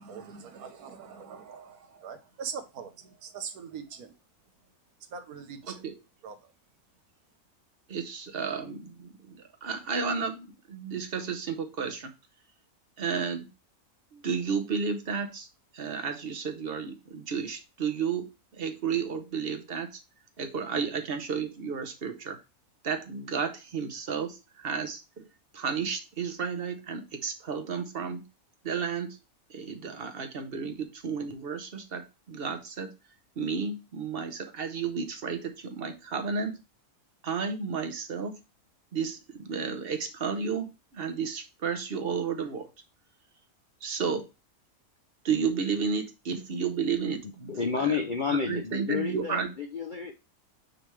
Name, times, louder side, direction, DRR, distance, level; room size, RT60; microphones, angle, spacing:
voice 1, 0.0-4.1 5.1-5.8 6.2-6.5, right 6 dB, 90° right, 1.4 m, -42 dB
voice 2, 7.9-12.1 13.0-13.5 14.1-15.5 15.7-20.0 20.4-22.4 22.8-25.3 25.5-28.2 28.6-29.2 29.5-32.9 33.4-36.6 37.2-38.4 38.9-42.7 43.8-44.3 45.2-47.5 47.8-47.9 48.3-49.5, right 6 dB, 45° right, 1.0 m, -32 dB
voice 3, 47.5-50.1, left 5 dB, 55° left, 0.6 m, -30 dB
9.0 x 3.4 x 3.2 m
omnidirectional pair, 1.5 m